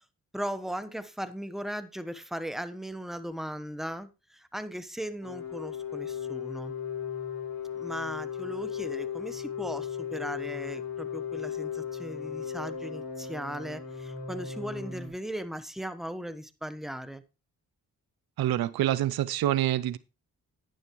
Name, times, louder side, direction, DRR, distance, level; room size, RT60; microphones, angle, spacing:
voice 1, 0.3-6.7 7.8-17.2, equal, ahead, 1.1 m, -38 dB
sound 1, 5.2-15.1, left 7 dB, 70° left, 3.9 m, -36 dB
voice 2, 18.4-20.0, right 13 dB, 85° right, 0.5 m, -26 dB
10.5 x 9.8 x 3.1 m
supercardioid pair, 45°, 36 cm